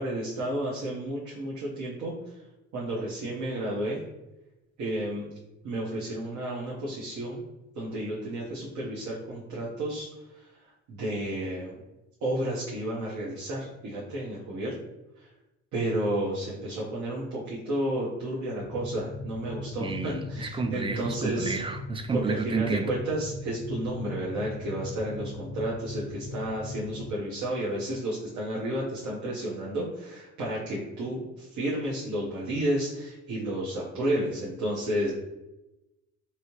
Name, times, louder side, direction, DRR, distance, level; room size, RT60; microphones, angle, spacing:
voice 1, 0.0-2.1 2.7-4.0 4.8-5.3 5.6-7.4 7.7-10.1 10.3-10.5 10.9-11.8 12.2-14.7 15.2-15.3 15.7-21.6 22.1-35.1, right 1 dB, 75° right, -6 dB, 0.9 m, -31 dB
sound 1, 18.6-27.1, left 2 dB, 80° left, 0.5 m, -39 dB
voice 2, 19.8-22.9, right 4 dB, 20° right, 6 dB, 0.3 m, -31 dB
3.1 x 2.7 x 3.0 m, 0.97 s
cardioid pair, 90°, 30 cm